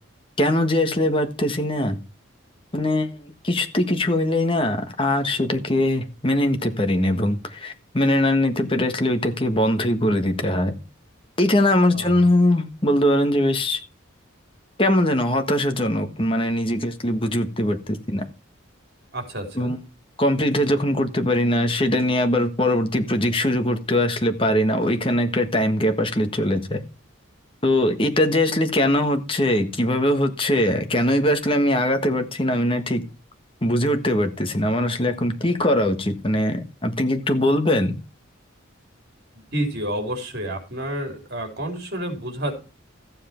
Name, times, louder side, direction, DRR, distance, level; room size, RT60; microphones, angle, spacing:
voice 1, 0.4-2.0 2.7-10.7 11.4-13.8 14.8-18.2 19.5-19.8 20.2-26.8 27.6-33.0 33.6-37.9, left 1 dB, 25° left, 6 dB, 1.4 m, -21 dB
voice 2, 11.9-12.3 19.1-19.7 39.5-42.5, right 1 dB, 50° right, 4 dB, 3.8 m, -29 dB
14.5 x 7.6 x 4.4 m, 0.32 s
head